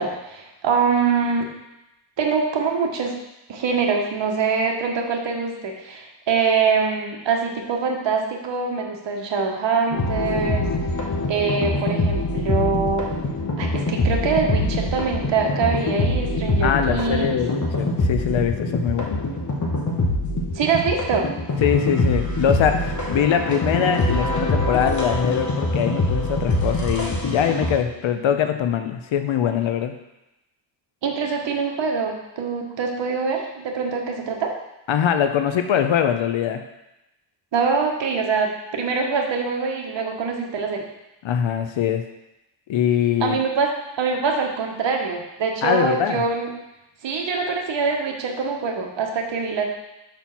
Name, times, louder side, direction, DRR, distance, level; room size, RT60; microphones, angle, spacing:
voice 1, 0.0-1.5 2.2-3.1 3.5-10.7 11.3-13.1 13.6-17.4 20.5-21.3 31.0-34.5 37.5-40.9 43.2-43.7 44.0-46.5 47.0-49.7, right 5 dB, 70° right, 2 dB, 1.2 m, -24 dB
sound 1, 9.9-27.8, left 1 dB, 40° left, 1.4 m, -24 dB
voice 2, 16.6-19.2 21.6-29.9 34.9-36.6 41.2-42.0 42.7-43.4 45.6-46.2, left 8 dB, 85° left, 7 dB, 0.7 m, -22 dB
5.8 x 4.4 x 5.8 m, 0.92 s
wide cardioid pair, 125°, 45 cm